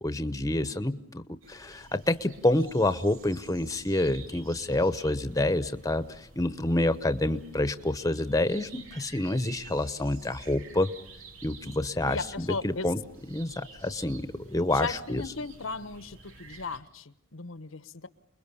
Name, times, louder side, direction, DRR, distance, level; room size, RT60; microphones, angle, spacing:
voice 1, 0.0-1.2 1.5-10.9 11.4-13.0 13.3-15.2, left 1 dB, 15° left, 1.0 m, -28 dB
sound 1, 1.4-16.8, right 4 dB, 90° right, 3.1 m, -51 dB
voice 2, 12.0-12.9 14.7-18.1, left 4 dB, 85° left, 1.2 m, -36 dB
29.0 x 21.5 x 6.9 m
head